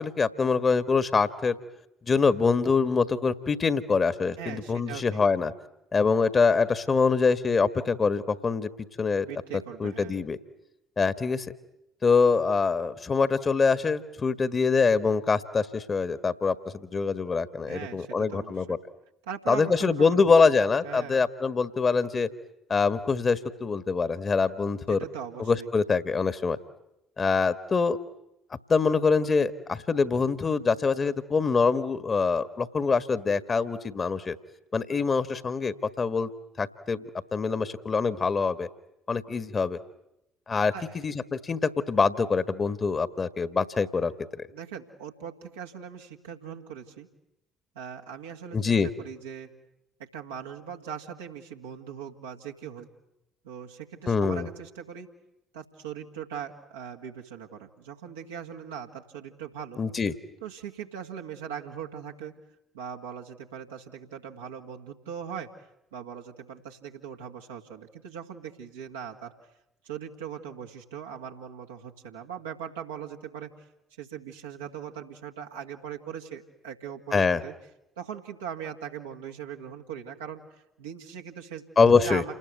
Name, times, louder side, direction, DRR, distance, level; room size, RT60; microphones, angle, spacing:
voice 1, 0.0-1.5 2.1-5.5 5.9-8.7 9.0-9.3 9.8-10.4 11.0-11.5 12.0-18.8 19.5-22.3 22.7-25.0 25.4-26.6 27.2-28.0 28.7-34.4 34.7-36.3 36.6-37.0 37.3-38.7 39.1-39.8 40.5-40.7 41.0-44.5 48.5-48.9 54.1-54.5 59.8-60.1 77.1-77.4 81.8-82.2, left 4 dB, 35° left, 14 dB, 1.6 m, -24 dB
voice 2, 4.4-5.2 9.2-10.2 17.7-18.8 19.2-21.2 24.9-25.7 40.7-40.9 44.5-47.1 47.8-49.5 50.0-52.9 53.4-55.1 55.5-59.8 60.4-62.3 62.7-65.5 65.9-69.3 69.8-73.5 74.0-77.5 78.0-80.4 80.8-81.6 82.0-82.4, right 8 dB, 75° right, 1 dB, 2.0 m, -40 dB
29.0 x 20.5 x 9.4 m, 0.87 s
figure-of-eight pair, 50°, 0 cm